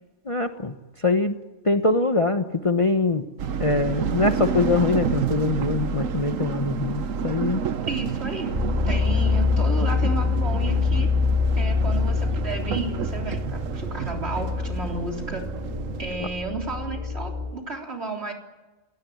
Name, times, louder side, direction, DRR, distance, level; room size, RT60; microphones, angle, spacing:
voice 1, 0.3-0.7 1.0-1.3 1.6-3.2 3.6-7.6, left 3 dB, 25° left, 7 dB, 1.0 m, -23 dB
sound 1, 3.4-16.1, right 7 dB, 75° right, 1.3 m, -30 dB
voice 2, 7.8-8.6 8.8-11.1 11.6-15.5 16.0-18.3, right 3 dB, 50° right, 1 dB, 3.9 m, -32 dB
sound 2, 8.5-17.5, left 4 dB, 35° right, 5.1 m, -25 dB
28.5 x 16.5 x 9.3 m, 1.1 s
omnidirectional pair, 1.4 m